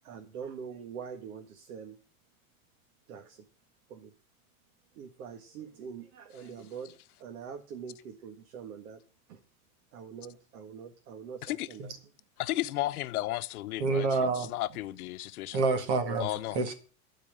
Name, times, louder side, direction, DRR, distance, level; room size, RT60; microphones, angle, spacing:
voice 1, 0.0-2.0 3.1-3.4 3.9-4.1 4.9-9.0 9.3-9.4 9.9-11.9, right 7 dB, 80° right, 1.8 m, -44 dB
voice 2, 12.4-15.6 16.2-16.6, left 16 dB, 85° left, 0.9 m, -34 dB
voice 3, 13.8-14.5 15.5-16.3 16.5-16.7, right 4 dB, 50° right, 1.9 m, -27 dB
12.5 x 4.8 x 8.0 m
supercardioid pair, 175°, 43 cm